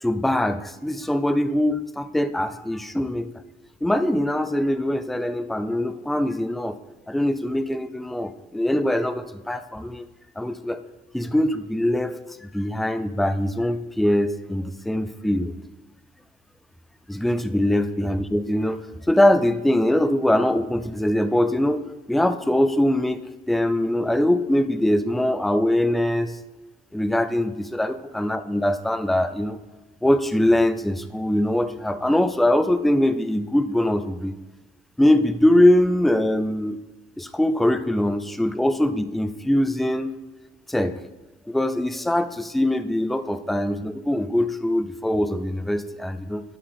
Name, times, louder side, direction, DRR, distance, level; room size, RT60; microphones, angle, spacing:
voice 1, 0.0-3.3 3.8-6.7 7.1-10.1 10.4-10.8 11.1-12.2 12.4-15.5 17.1-18.8 19.1-26.4 26.9-29.6 30.0-34.3 35.0-36.8 37.2-40.1 40.7-41.0 41.5-46.4, left 1 dB, ahead, 11 dB, 0.4 m, -22 dB
11.5 x 5.8 x 3.4 m, 1.1 s
cardioid pair, 110°, 17 cm